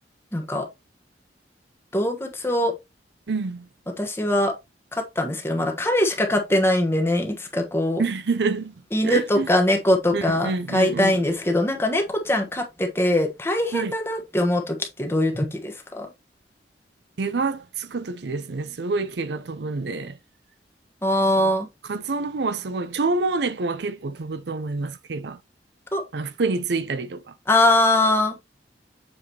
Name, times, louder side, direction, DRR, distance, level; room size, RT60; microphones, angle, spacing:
voice 1, 0.3-0.7 1.9-2.7 4.0-4.5 4.9-8.0 8.9-16.1 21.0-21.7 25.9-26.0 27.5-28.3, left 1 dB, 15° left, 1.1 m, -22 dB
voice 2, 3.3-3.7 8.0-8.7 9.0-9.5 10.1-11.2 13.7-13.9 17.2-20.2 21.4-21.5 21.9-25.4 26.1-27.2, right 3 dB, 70° right, 0.6 m, -27 dB
7.2 x 4.7 x 2.8 m
head